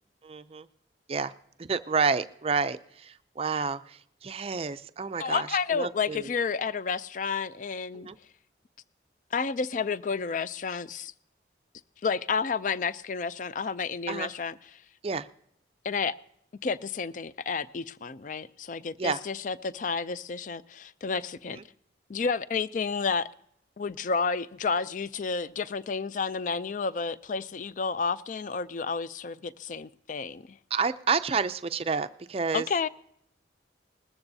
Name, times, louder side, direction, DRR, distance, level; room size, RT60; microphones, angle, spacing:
voice 1, 0.2-0.7 1.1-1.3 1.6-6.3 7.9-8.2 14.1-14.3 15.0-15.3 19.0-19.2 21.5-21.6 30.7-32.7, right 5 dB, 30° right, 0.4 m, -30 dB
voice 2, 5.2-8.1 9.3-11.1 12.0-14.5 15.8-16.1 16.6-21.6 22.1-23.3 23.8-30.6 32.5-32.9, left 5 dB, 40° left, 0.4 m, -31 dB
20.0 x 14.0 x 2.7 m
head